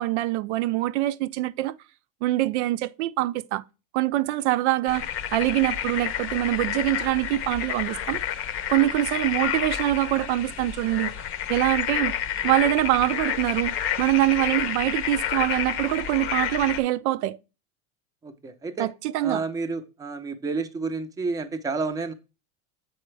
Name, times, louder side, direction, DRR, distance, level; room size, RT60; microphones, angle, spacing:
voice 1, 0.0-1.7 2.2-3.6 3.9-8.2 8.7-11.1 11.5-12.1 12.4-17.4 18.8-19.4, right 16 dB, 80° right, 0.5 m, -24 dB
sound 1, 4.9-16.8, left 10 dB, 40° left, 0.7 m, -29 dB
voice 2, 18.2-18.9 19.2-22.1, right 4 dB, 10° right, 0.5 m, -30 dB
7.7 x 4.3 x 3.2 m
supercardioid pair, 140°, 34 cm